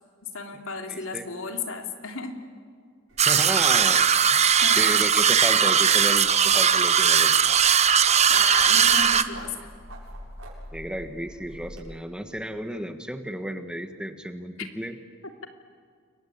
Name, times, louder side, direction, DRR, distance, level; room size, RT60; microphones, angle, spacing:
voice 1, 0.3-2.4 4.6-4.9 8.3-9.7 14.6-14.7, left 4 dB, 90° left, 4 dB, 3.1 m, -34 dB
voice 2, 0.9-1.3 3.2-4.5 4.8-7.3 10.7-15.0, equal, 5° right, 7 dB, 1.5 m, -33 dB
sound 1, 3.1-11.8, right 1 dB, 80° right, 7.6 m, -44 dB
sound 2, 3.2-9.2, right 7 dB, 30° right, 1.0 m, -19 dB
29.5 x 23.0 x 8.8 m, 2.1 s
head